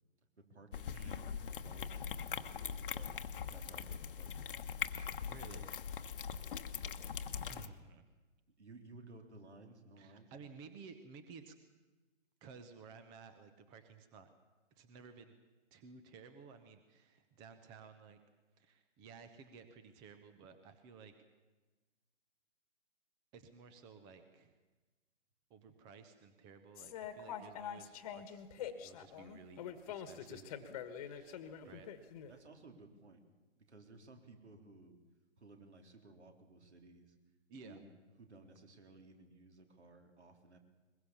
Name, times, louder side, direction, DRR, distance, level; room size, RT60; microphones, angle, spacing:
voice 1, 0.4-3.2 3.5-4.5 6.8-7.1 8.6-10.3 31.6-31.8 32.3-33.2 33.6-35.0 35.4-37.2 37.6-37.9 38.2-40.6, right 2 dB, 65° right, 5 dB, 3.7 m, -57 dB
sound 1, 0.7-7.7, left 7 dB, 45° left, 1.2 m, -42 dB
voice 2, 0.9-1.2 5.0-5.7 7.5-8.0 10.0-11.5 12.4-14.3 14.8-15.3 15.7-18.2 18.6-21.1 23.3-24.5 25.5-30.5 31.1-31.9 37.5-37.8, right 5 dB, 10° right, 9 dB, 0.7 m, -55 dB
sound 2, 26.7-32.3, left 9 dB, 30° left, 1.5 m, -45 dB
21.5 x 21.5 x 7.2 m, 1.2 s
figure-of-eight pair, 135°, 36 cm